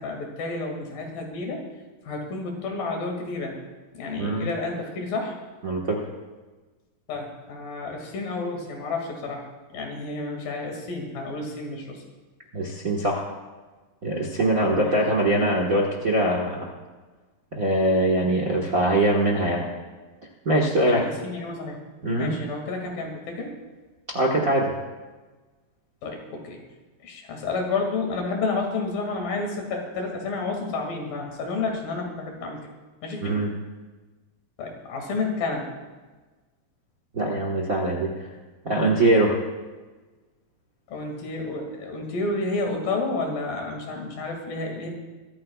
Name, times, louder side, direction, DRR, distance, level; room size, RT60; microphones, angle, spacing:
voice 1, 0.0-1.6 2.0-3.6 3.9-5.4 7.1-9.5 9.7-12.0 14.6-15.0 20.9-21.8 22.1-23.5 26.0-26.6 27.0-32.6 33.0-33.4 34.6-35.7 40.9-44.9, left 3 dB, 85° left, 1 dB, 4.1 m, -30 dB
voice 2, 4.2-4.5 5.6-6.0 12.5-13.2 14.0-16.7 17.5-19.7 20.4-21.0 22.0-22.4 24.1-24.7 33.2-33.5 37.1-38.1 38.6-39.4, right 1 dB, 45° right, -1 dB, 1.1 m, -22 dB
24.0 x 14.0 x 2.4 m, 1.3 s
omnidirectional pair, 4.0 m